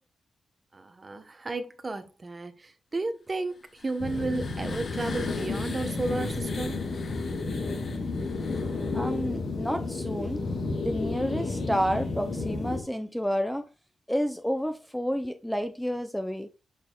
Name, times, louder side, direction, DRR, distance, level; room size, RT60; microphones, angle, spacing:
voice 1, 0.7-6.9, right 2 dB, 25° right, 0.9 m, -33 dB
sound 1, 3.5-9.3, left 4 dB, 50° left, 1.0 m, -44 dB
sound 2, 4.0-12.8, left 3 dB, 65° left, 1.7 m, -32 dB
voice 2, 8.9-10.4 10.8-13.7 14.1-16.5, equal, 5° left, 0.5 m, -30 dB
7.3 x 6.2 x 2.3 m
wide cardioid pair, 150°, 0 cm